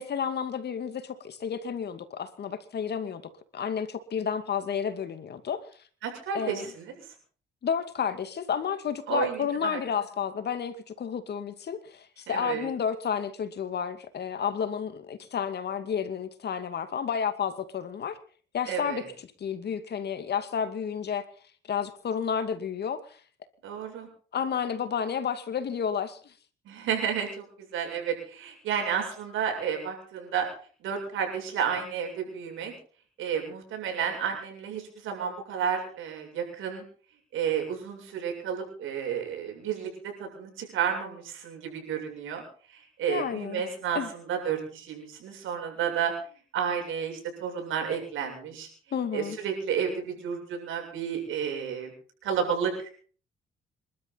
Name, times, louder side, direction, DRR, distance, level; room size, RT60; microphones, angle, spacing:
voice 1, 0.0-3.2 3.5-5.6 6.3-6.7 7.6-18.2 18.5-19.0 19.4-21.2 21.7-23.2 24.3-26.3 43.1-43.6 43.9-44.1 48.9-49.4, left 7 dB, 55° left, 10 dB, 2.4 m, -31 dB
voice 2, 6.0-7.0 9.1-9.8 12.3-12.7 18.7-19.1 23.6-24.1 26.7-27.5 27.7-30.5 30.8-32.7 33.2-36.8 37.3-42.4 42.7-46.1 46.5-48.7 49.1-51.9 52.2-52.9, right 7 dB, 85° right, 3 dB, 7.6 m, -31 dB
27.0 x 12.5 x 4.2 m, 0.43 s
cardioid pair, 90°, 20 cm